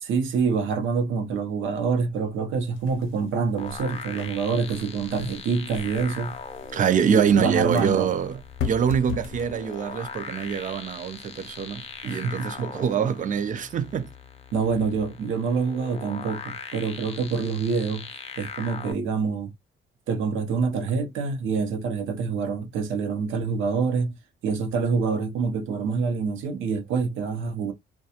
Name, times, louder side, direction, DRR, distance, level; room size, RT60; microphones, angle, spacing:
voice 1, 0.0-6.4 7.1-8.1 12.0-12.7 14.5-18.1 18.4-19.5 20.1-24.2 24.4-27.7, right 5 dB, 80° right, 0.7 m, -26 dB
sound 1, 2.7-13.5, left 8 dB, 85° left, 0.6 m, -40 dB
sound 2, 3.6-18.9, left 5 dB, 30° left, 0.5 m, -40 dB
voice 2, 6.7-14.1, right 7 dB, 40° right, 0.4 m, -25 dB
2.3 x 2.2 x 2.7 m
cardioid pair, 90°, 20 cm